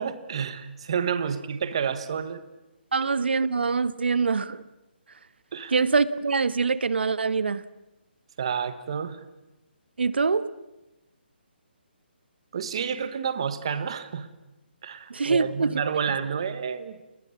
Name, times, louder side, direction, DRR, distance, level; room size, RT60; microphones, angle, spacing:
voice 1, 0.0-2.4 5.5-5.8 8.4-9.2 12.5-14.3 14.8-17.0, right 7 dB, 30° right, 1.3 m, -29 dB
voice 2, 2.9-4.6 5.7-7.6 10.0-10.5 15.1-15.7 16.1-16.2, right 4 dB, 70° right, 1.1 m, -24 dB
29.0 x 20.5 x 7.2 m
hypercardioid pair, 180°, 6 cm